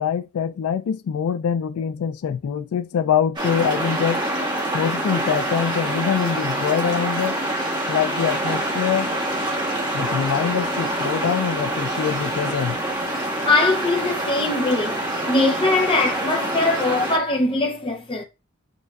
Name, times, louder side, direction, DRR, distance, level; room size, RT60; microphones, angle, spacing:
voice 1, 0.0-4.2 4.7-7.4 7.9-9.1 9.9-12.8, left 8 dB, 90° left, 0.3 m, -24 dB
sound 1, 3.4-17.2, right 1 dB, 20° right, 1.1 m, -26 dB
voice 2, 13.4-18.2, left 2 dB, 25° left, 0.7 m, -21 dB
6.7 x 2.6 x 2.3 m
head